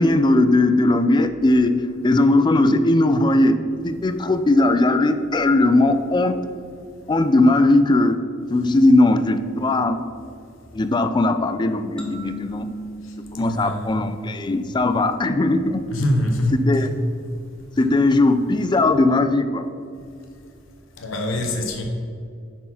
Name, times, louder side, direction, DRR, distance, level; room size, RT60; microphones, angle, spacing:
voice 1, 0.0-6.4 7.1-8.2 8.5-10.0 10.7-12.7 13.3-15.8 16.7-16.9 17.8-19.7, left 2 dB, 20° left, 9 dB, 0.4 m, -18 dB
sound 1, 12.0-14.6, left 1 dB, 5° left, 0.9 m, -36 dB
voice 2, 13.3-14.0 15.9-16.9 17.8-17.9 21.0-21.8, left 1 dB, 80° left, 3 dB, 0.9 m, -24 dB
7.3 x 4.7 x 5.7 m, 2.4 s
head